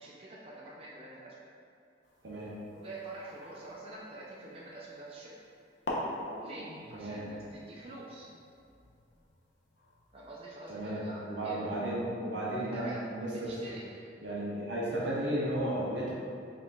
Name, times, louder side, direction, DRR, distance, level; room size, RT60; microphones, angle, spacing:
voice 1, 0.0-1.4 2.7-5.4 6.4-8.3 10.1-11.6 12.5-13.0 13.3-13.9, right 2 dB, 35° right, -5 dB, 0.5 m, -46 dB
sound 1, 2.0-5.0 5.5-5.6 5.9-10.4, left 1 dB, 90° left, 0.8 m, -44 dB
voice 2, 10.7-13.5 14.2-16.1, right 1 dB, 85° right, -6 dB, 1.2 m, -34 dB
6.2 x 3.7 x 2.3 m, 2.5 s
head